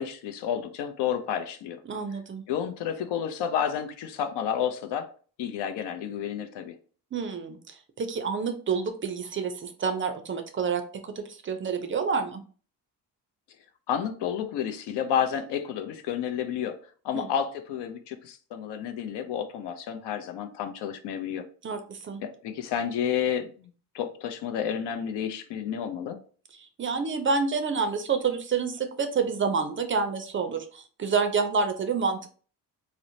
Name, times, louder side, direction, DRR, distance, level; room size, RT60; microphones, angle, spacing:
voice 1, 0.0-1.8 2.5-5.1 5.4-6.8 13.9-16.8 17.0-21.4 22.2-23.7 23.9-26.2, left 8 dB, 75° left, 0.5 m, -30 dB
voice 2, 1.9-2.4 7.1-12.4 17.1-17.3 21.6-22.2 26.6-32.3, right 5 dB, 30° right, 0.4 m, -28 dB
2.9 x 2.0 x 2.6 m
supercardioid pair, 70°, 42 cm